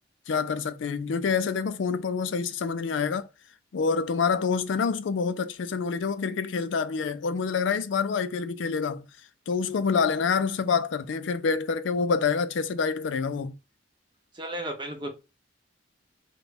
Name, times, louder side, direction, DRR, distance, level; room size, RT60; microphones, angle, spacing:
voice 1, 0.3-3.3 3.7-9.1 9.5-13.5, left 5 dB, 80° left, 0.4 m, -27 dB
voice 2, 14.3-15.1, right 1 dB, 25° right, 0.8 m, -34 dB
3.4 x 2.3 x 4.0 m
head